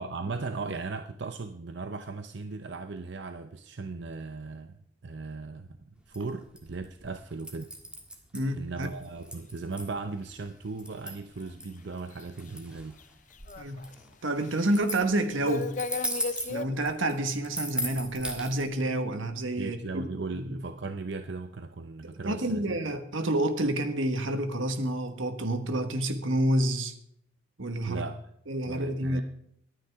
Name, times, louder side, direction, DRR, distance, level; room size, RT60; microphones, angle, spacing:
voice 1, 0.0-7.7 8.5-13.0 19.6-22.8 27.9-28.2 28.7-29.2, right 3 dB, 60° right, 0.6 m, -37 dB
sound 1, 6.0-18.6, equal, 5° right, 1.5 m, -38 dB
voice 2, 8.3-8.9 13.6-13.8 14.2-15.8 16.5-20.6 22.2-26.9 27.6-28.0 28.5-29.2, right 1 dB, 85° right, 1.4 m, -29 dB
sound 2, 12.2-12.3 13.0-13.1 13.3-13.9 14.5-14.8 15.1-16.6, left 4 dB, 40° left, 0.6 m, -34 dB
23.0 x 9.2 x 3.5 m
head